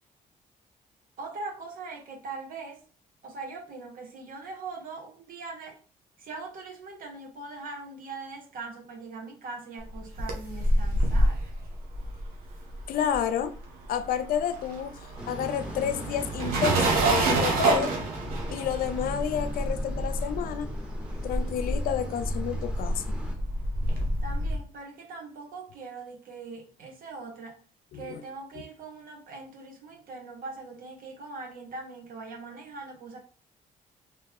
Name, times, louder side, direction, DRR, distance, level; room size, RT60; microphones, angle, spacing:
voice 1, 1.2-2.8 3.2-5.8 6.2-11.4 24.2-27.6 27.9-33.2, right 3 dB, 70° right, 1.3 m, -41 dB
sound 1, 9.9-13.6 13.8-24.6, right 1 dB, 90° right, 1.0 m, -28 dB
voice 2, 12.9-13.6 13.9-14.9 15.3-17.9 18.5-20.7 21.2-23.2 27.9-28.2, left 9 dB, 70° left, 0.5 m, -30 dB
sound 2, 15.2-23.4, right 1 dB, 5° right, 1.0 m, -40 dB
3.0 x 3.0 x 3.5 m
supercardioid pair, 70°, 15 cm